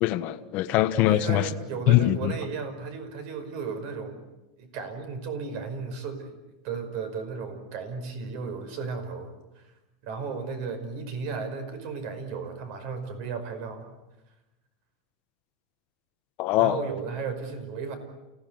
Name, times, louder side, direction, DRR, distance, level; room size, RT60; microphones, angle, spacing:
voice 1, 0.0-1.5 1.9-2.3 16.4-16.8, left 15 dB, 40° left, 1.3 m, -22 dB
voice 2, 1.1-4.2 4.6-6.4 6.6-9.6 10.0-13.9 16.6-18.0, right 5 dB, 50° right, 5.4 m, -34 dB
29.0 x 17.5 x 9.5 m
supercardioid pair, 160°, 4 cm